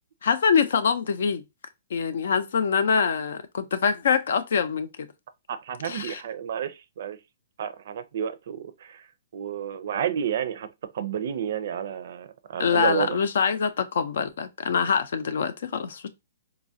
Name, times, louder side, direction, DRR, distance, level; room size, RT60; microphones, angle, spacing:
voice 1, 0.2-1.4 1.9-4.9 5.8-6.2 12.6-16.1, left 6 dB, 70° left, 0.5 m, -24 dB
voice 2, 5.5-7.2 7.6-9.1 9.3-13.2, right 9 dB, 60° right, 0.4 m, -31 dB
4.0 x 2.3 x 2.6 m
hypercardioid pair, 145°, 0 cm